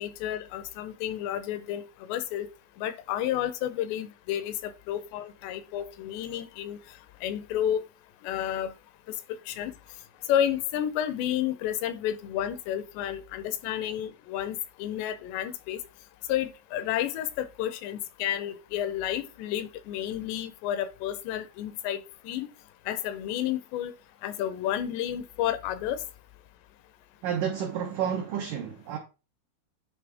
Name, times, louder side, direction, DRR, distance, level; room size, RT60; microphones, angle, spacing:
voice 1, 0.0-2.5 2.8-6.8 7.2-7.8 8.2-8.7 9.1-9.2 9.5-9.7 10.3-15.8 16.3-22.5 22.9-23.9 24.2-26.0, left 11 dB, 85° left, 2.8 m, -31 dB
voice 2, 27.2-29.0, right 8 dB, 85° right, 1.8 m, -30 dB
9.6 x 4.0 x 3.4 m
omnidirectional pair, 5.0 m